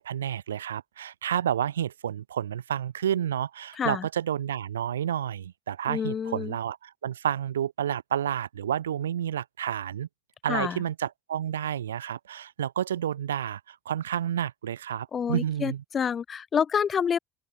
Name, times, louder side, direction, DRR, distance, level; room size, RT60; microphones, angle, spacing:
voice 1, 0.0-10.1 10.4-15.8, right 10 dB, 80° right, 0.8 m, -30 dB
voice 2, 3.7-4.1 5.9-6.6 10.5-10.8 15.1-17.2, left 7 dB, 40° left, 1.9 m, -28 dB
open air
figure-of-eight pair, 60°, 0 cm